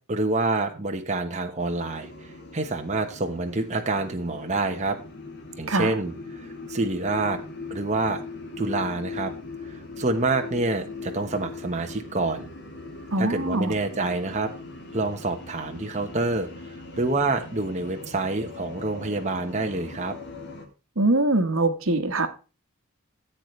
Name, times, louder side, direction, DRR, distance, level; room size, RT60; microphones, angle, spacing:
voice 1, 0.1-5.0 5.6-7.4 7.7-8.2 8.6-9.3 9.7-12.5 13.2-14.5 14.9-16.5 17.0-20.1, right 2 dB, 35° right, 4 dB, 1.1 m, -27 dB
sound 1, 1.6-20.7, left 3 dB, 55° left, 2.5 m, -40 dB
voice 2, 13.1-13.7 21.0-22.3, right 2 dB, 75° right, 9 dB, 1.3 m, -23 dB
14.5 x 8.1 x 3.2 m, 0.32 s
head